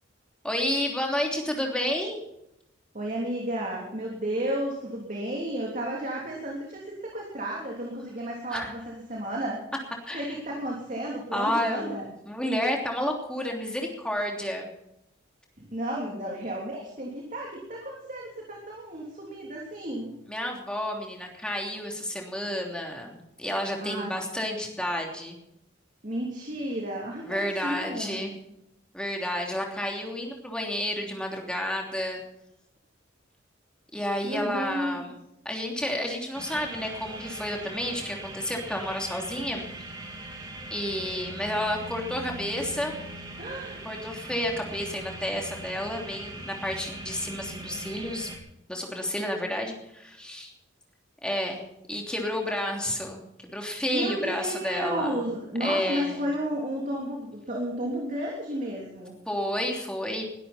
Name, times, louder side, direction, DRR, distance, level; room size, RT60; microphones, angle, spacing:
voice 1, 0.4-2.2 8.5-8.7 10.1-10.4 11.3-14.7 20.3-25.4 27.2-28.3 28.9-32.2 33.9-35.2 35.4-39.7 40.7-43.0 43.8-48.3 48.7-50.5 51.2-51.6 51.9-55.3 55.6-56.3 59.3-60.2, left 1 dB, 5° left, 0 dB, 3.1 m, -30 dB
voice 2, 2.9-9.7 10.1-12.1 15.6-20.2 23.8-24.1 26.0-28.2 34.2-35.1 43.4-43.8 53.9-59.2, right 1 dB, 40° right, -2 dB, 3.3 m, -32 dB
sound 1, 36.3-48.4, right 2 dB, 20° right, 2.8 m, -40 dB
20.5 x 13.0 x 4.4 m, 0.83 s
head